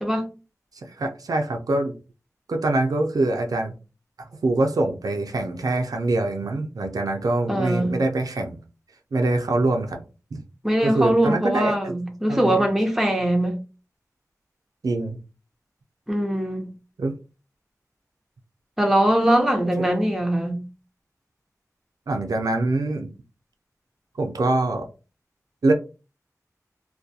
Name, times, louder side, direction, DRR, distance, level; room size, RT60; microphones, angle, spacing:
voice 1, 0.8-1.9 2.5-3.7 4.2-8.6 9.1-10.0 10.3-10.4 10.8-11.9 12.3-12.7 14.8-15.2 17.0-17.1 22.1-23.1 24.2-24.9 25.6-25.7, right 2 dB, 80° right, 0.4 m, -24 dB
voice 2, 7.5-8.0 10.6-13.6 16.1-16.7 18.8-20.6, right 1 dB, 5° right, 0.7 m, -21 dB
2.3 x 2.2 x 2.6 m
wide cardioid pair, 55°, 6 cm